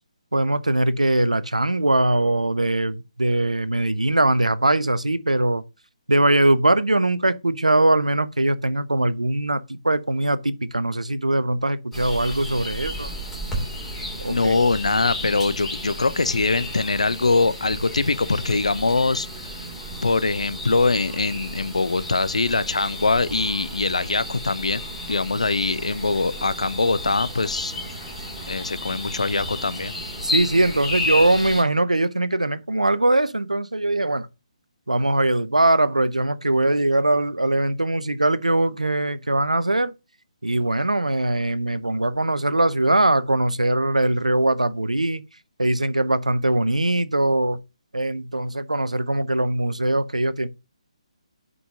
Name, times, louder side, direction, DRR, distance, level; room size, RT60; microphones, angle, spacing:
voice 1, 0.3-5.6 6.1-13.1 14.2-14.6 30.2-34.3 34.9-39.9 40.4-45.2 45.6-47.6 47.9-50.5, right 1 dB, 80° right, 0.7 m, -21 dB
sound 1, 11.9-31.6, left 1 dB, 5° left, 2.7 m, -33 dB
voice 2, 14.3-19.3 20.0-24.8 25.1-27.7 28.5-29.9, left 3 dB, 70° left, 0.7 m, -22 dB
5.7 x 5.4 x 6.5 m
figure-of-eight pair, 140°, 4 cm